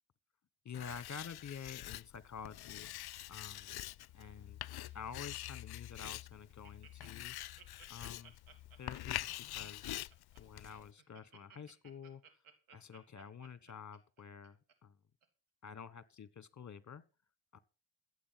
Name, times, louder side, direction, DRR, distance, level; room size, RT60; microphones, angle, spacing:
voice 1, 0.6-2.9 3.3-3.8 4.1-4.6 4.9-7.4 7.9-8.3 8.8-10.1 10.4-12.2 12.7-15.0 15.6-17.0 17.5-17.6, left 7 dB, 35° left, 1.2 m, -49 dB
Writing, 0.7-10.9, left 15 dB, 55° left, 0.5 m, -45 dB
Laughter, 2.7-4.5 4.7-5.1 5.6-5.7 6.0-6.1 6.3-14.7 15.2-15.3, right 6 dB, 85° right, 2.5 m, -61 dB
14.5 x 7.9 x 5.8 m
cardioid pair, 70°, 48 cm